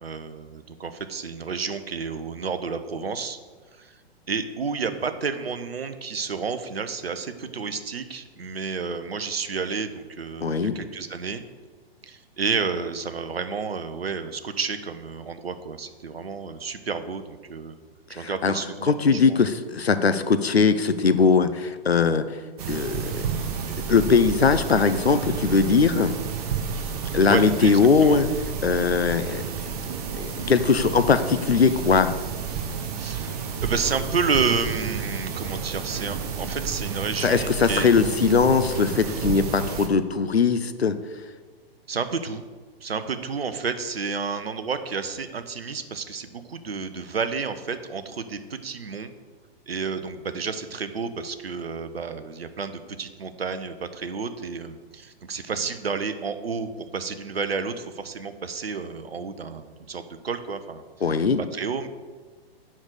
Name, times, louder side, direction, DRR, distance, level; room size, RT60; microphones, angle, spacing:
voice 1, 0.0-3.4 3.8-4.0 4.3-11.4 12.0-17.8 18.1-19.4 27.2-28.2 33.0-37.9 41.9-42.4 42.8-49.1 49.7-61.2 61.5-61.9, right 5 dB, 70° right, 10 dB, 0.9 m, -30 dB
voice 2, 10.4-10.8 18.2-18.5 18.8-22.2 22.7-23.1 23.9-26.2 27.1-28.3 28.6-29.4 30.1-32.1 37.2-41.0 61.0-61.4, left 5 dB, 80° left, 11 dB, 0.7 m, -20 dB
sound 1, 22.6-39.9, right 6 dB, 40° right, 1.1 m, -31 dB
7.3 x 6.1 x 6.7 m, 1.4 s
figure-of-eight pair, 115°, 31 cm